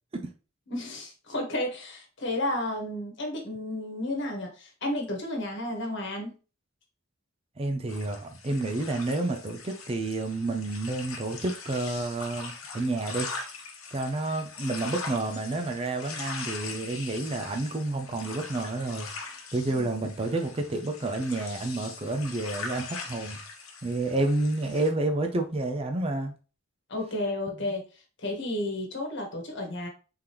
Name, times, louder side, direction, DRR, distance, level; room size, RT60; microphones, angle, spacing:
voice 1, 0.7-6.4 19.8-19.9 26.9-29.9, left 1 dB, 60° left, 2 dB, 1.3 m, -32 dB
voice 2, 7.6-13.3 13.9-19.1 19.5-23.4 23.8-26.3 27.5-27.6, right 2 dB, 30° right, 4 dB, 0.5 m, -30 dB
sound 1, 7.9-24.9, left 4 dB, 90° left, 1.0 m, -41 dB
3.7 x 3.4 x 2.9 m, 0.35 s
head